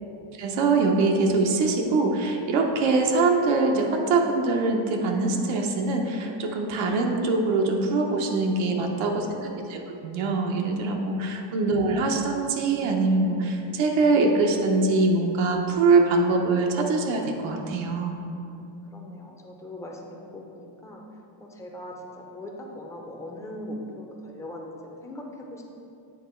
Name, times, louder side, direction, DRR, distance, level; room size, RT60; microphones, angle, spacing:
voice 1, 0.3-18.2, right 3 dB, 80° right, 2 dB, 0.9 m, -23 dB
voice 2, 13.2-13.7 18.5-18.7 18.9-21.0 21.4-25.6, left 1 dB, 5° left, -1 dB, 0.5 m, -41 dB
8.3 x 3.0 x 4.3 m, 2.7 s
cardioid pair, 150°, 47 cm